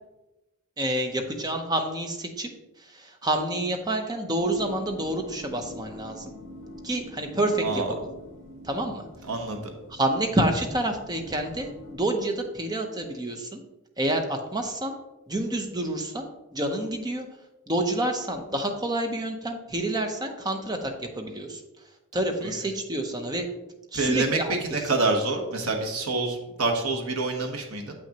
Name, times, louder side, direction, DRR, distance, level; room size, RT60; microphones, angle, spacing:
voice 1, 0.8-2.5 2.8-6.2 6.8-8.0 8.6-9.1 9.9-13.6 14.0-14.9 15.3-16.3 16.5-17.3 17.7-21.6 22.1-23.5 23.9-25.0, right 1 dB, 20° right, 5 dB, 0.7 m, -28 dB
sound 1, 4.4-12.0, left 1 dB, 55° left, 1.2 m, -45 dB
voice 2, 7.6-7.9 9.3-9.7 22.4-22.5 23.9-27.9, right 3 dB, 70° right, 3 dB, 1.1 m, -27 dB
7.7 x 6.0 x 2.9 m, 0.99 s
head